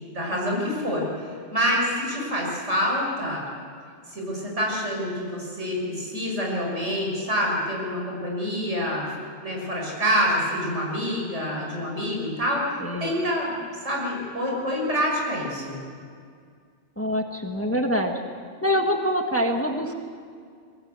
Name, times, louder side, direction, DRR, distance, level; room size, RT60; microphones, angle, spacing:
voice 1, 0.1-3.4 4.1-9.1 9.4-12.7 13.0-15.8, equal, 80° right, -2 dB, 6.4 m, -27 dB
voice 2, 12.8-13.1 17.0-18.2 18.6-19.9, equal, 10° left, 3 dB, 1.5 m, -25 dB
23.5 x 17.5 x 8.1 m, 2.2 s
omnidirectional pair, 1.2 m